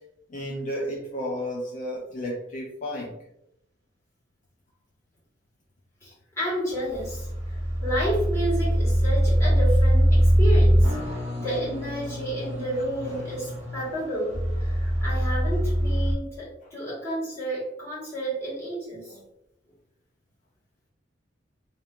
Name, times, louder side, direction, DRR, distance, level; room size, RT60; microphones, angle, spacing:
voice 1, 0.3-3.1, equal, 45° left, -2 dB, 0.4 m, -32 dB
voice 2, 6.0-7.3 7.8-19.2, right 1 dB, 15° left, -8 dB, 1.5 m, -31 dB
sound 1, 6.7-16.1, equal, 40° right, 1.0 m, -23 dB
2.6 x 2.6 x 2.4 m, 0.79 s
head